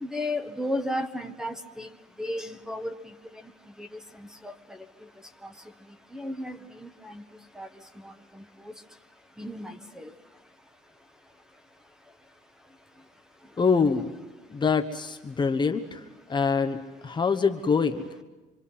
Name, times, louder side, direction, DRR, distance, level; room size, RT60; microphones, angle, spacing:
voice 1, 0.0-1.9 2.2-3.1 3.8-3.9 4.1-4.8 5.4-5.5 6.1-7.2 7.5-7.7 8.0-8.4 9.4-10.1, left 1 dB, 5° right, 8 dB, 1.5 m, -34 dB
voice 2, 13.6-14.1 14.5-16.0 16.3-18.1, left 5 dB, 25° left, 5 dB, 1.2 m, -25 dB
26.5 x 25.0 x 5.7 m, 1.2 s
cardioid pair, 110°, 17 cm